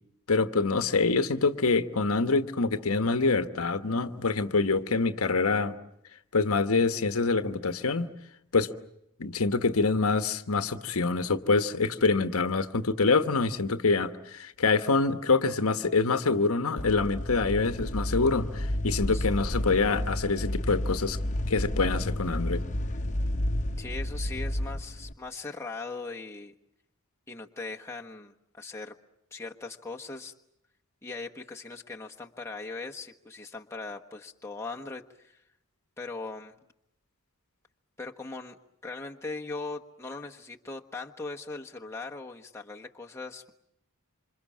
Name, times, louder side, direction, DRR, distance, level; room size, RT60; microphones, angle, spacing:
voice 1, 0.3-5.8 6.3-8.1 8.5-8.7 9.2-21.2 21.5-22.6, left 4 dB, 75° left, 10 dB, 1.2 m, -26 dB
sound 1, 16.8-25.1, left 1 dB, 35° left, 1.2 m, -31 dB
voice 2, 23.8-26.5 27.3-28.9 29.3-30.3 31.0-35.4 36.0-36.5 38.0-43.5, left 3 dB, 10° left, 1 dB, 1.3 m, -39 dB
27.5 x 26.5 x 7.3 m, 0.78 s
head